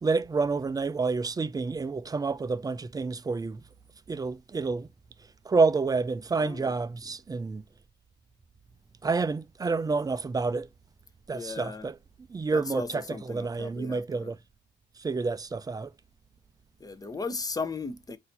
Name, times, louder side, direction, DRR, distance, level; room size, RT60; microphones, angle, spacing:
voice 1, 0.0-3.6 4.1-4.9 5.5-7.6 9.0-10.7 11.3-12.0 12.3-14.4 15.0-15.9, right 4 dB, 20° right, 0.3 m, -28 dB
voice 2, 6.4-6.8 11.3-11.9 12.5-14.3 16.8-18.2, left 4 dB, 20° left, 0.6 m, -36 dB
4.1 x 2.6 x 3.9 m
cardioid pair, 90°, 20 cm